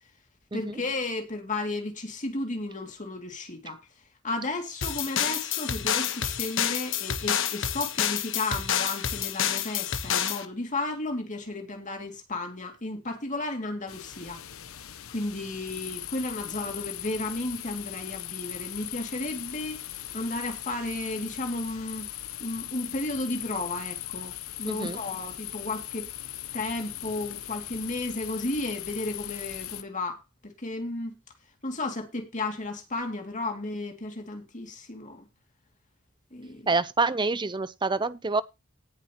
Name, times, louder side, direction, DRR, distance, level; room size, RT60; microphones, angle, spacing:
voice 1, 0.5-3.8 4.2-14.4 15.1-19.8 20.1-22.1 22.4-24.3 24.6-26.1 26.5-31.1 31.6-35.2 36.3-36.7, left 2 dB, 35° left, 2.6 m, -33 dB
sound 1, 4.8-10.4, left 9 dB, 60° left, 1.3 m, -28 dB
sound 2, 13.9-29.8, left 13 dB, 75° left, 0.9 m, -39 dB
voice 2, 24.7-25.0 36.7-38.4, right 3 dB, 20° right, 0.7 m, -27 dB
18.0 x 7.6 x 3.0 m
head